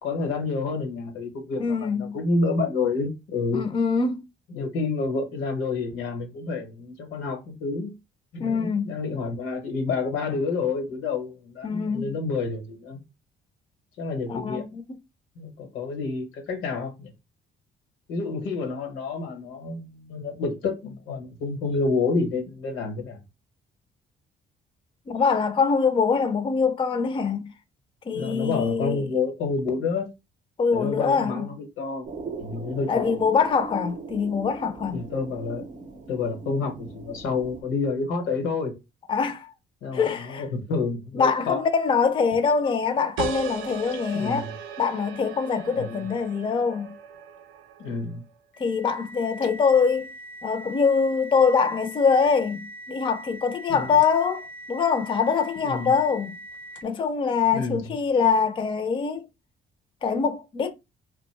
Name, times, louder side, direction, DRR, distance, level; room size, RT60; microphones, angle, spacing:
voice 1, 0.0-3.6 4.5-7.9 8.3-13.0 14.0-14.6 15.4-17.1 18.1-23.2 28.1-30.1 30.7-32.1 32.4-33.2 34.9-35.6 36.1-38.8 39.8-41.6 44.1-44.5 45.8-46.1 47.8-48.2 53.7-54.0 55.6-56.0 57.5-58.0, left 4 dB, 90° left, 0.9 m, -29 dB
voice 2, 1.6-2.2 3.5-4.2 8.4-8.9 11.6-12.1 14.3-14.8 25.1-27.5 28.1-29.0 30.6-31.5 32.9-35.0 39.1-39.5 39.9-40.4 41.1-44.5 44.8-46.9 48.6-50.1 50.4-56.4 56.8-59.3 60.0-60.7, left 5 dB, 25° left, 0.4 m, -24 dB
sound 1, 32.1-37.6, right 4 dB, 40° right, 0.6 m, -39 dB
sound 2, 43.2-48.4, right 8 dB, 85° right, 0.4 m, -38 dB
sound 3, 48.5-57.1, right 1 dB, 70° left, 0.6 m, -42 dB
2.6 x 2.1 x 3.1 m
cardioid pair, 90°, 20 cm